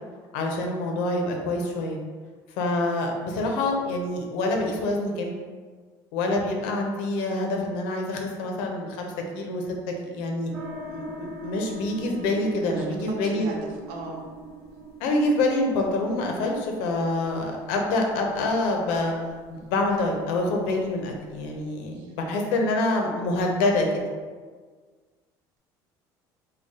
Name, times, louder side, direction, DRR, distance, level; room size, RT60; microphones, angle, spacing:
voice 1, 0.3-2.0 2.5-5.4 6.1-10.5 10.8-13.5 15.0-19.1 19.5-24.0, left 2 dB, 80° left, 2 dB, 0.7 m, -26 dB
sound 1, 10.5-21.7, right 1 dB, 30° right, 0.9 m, -43 dB
voice 2, 12.6-13.6 13.9-14.3 21.9-22.1, right 2 dB, 65° right, 0 dB, 0.7 m, -38 dB
3.9 x 2.3 x 3.6 m, 1.6 s
cardioid pair, 180°, 9 cm